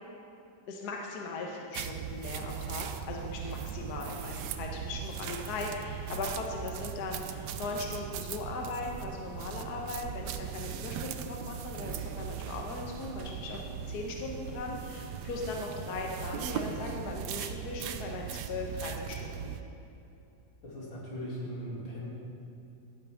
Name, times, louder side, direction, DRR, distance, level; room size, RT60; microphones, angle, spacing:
voice 1, 0.7-19.5, left 3 dB, 60° left, 0 dB, 1.4 m, -39 dB
sound 1, 1.7-19.6, right 8 dB, 75° right, 1.1 m, -39 dB
voice 2, 20.6-22.1, equal, 90° left, -6 dB, 3.3 m, -39 dB
15.0 x 8.8 x 3.5 m, 2.8 s
omnidirectional pair, 2.1 m